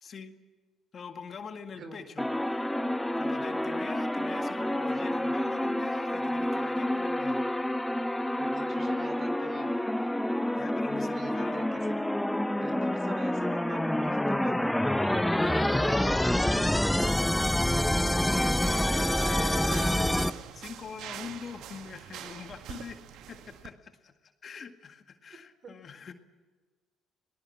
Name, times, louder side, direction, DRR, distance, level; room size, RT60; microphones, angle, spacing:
voice 1, 0.0-0.3 0.9-2.3 3.2-7.4 10.6-11.6 15.3-16.9 18.3-20.2 20.5-24.1 24.4-26.1, left 6 dB, 45° left, 7 dB, 1.9 m, -43 dB
sound 1, 2.2-20.3, left 1 dB, 5° left, 1.0 m, -28 dB
voice 2, 8.4-9.7 10.9-12.0 12.6-14.7 25.6-25.7, right 4 dB, 50° right, 9 dB, 4.0 m, -45 dB
sound 2, 18.7-23.7, right 10 dB, 70° right, 1.2 m, -44 dB
28.5 x 19.5 x 7.3 m, 1.3 s
hypercardioid pair, 55°, 0 cm